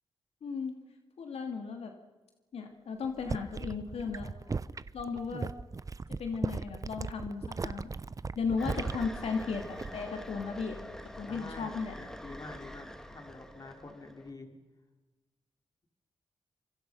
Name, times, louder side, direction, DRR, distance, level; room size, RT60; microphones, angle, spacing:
voice 1, 0.4-0.8 1.2-1.9 2.5-4.3 4.9-5.5 6.2-7.9 8.4-10.8 11.2-11.9, left 5 dB, 85° left, 4 dB, 2.9 m, -35 dB
sound 1, 3.0-10.2 10.5-10.9, right 4 dB, 35° right, 0.8 m, -38 dB
sound 2, 8.6-14.3, equal, 5° left, 2.2 m, -45 dB
voice 2, 11.2-14.6, left 2 dB, 40° left, 4 dB, 4.8 m, -47 dB
26.5 x 24.5 x 5.8 m, 1.2 s
cardioid pair, 90°, 10 cm